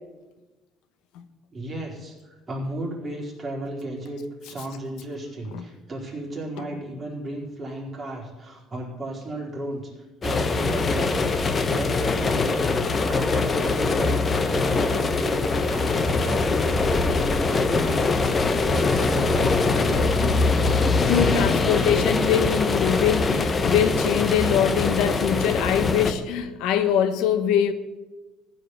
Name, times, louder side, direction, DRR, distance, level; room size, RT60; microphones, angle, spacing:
voice 1, 1.5-14.3 14.5-20.3, right 1 dB, 25° right, -4 dB, 4.7 m, -35 dB
sound 1, 10.2-26.1, left 3 dB, 30° left, 1.2 m, -23 dB
voice 2, 20.7-27.7, left 8 dB, 80° left, 9 dB, 1.2 m, -23 dB
15.5 x 5.6 x 9.7 m, 1.1 s
cardioid pair, 125°, 0 cm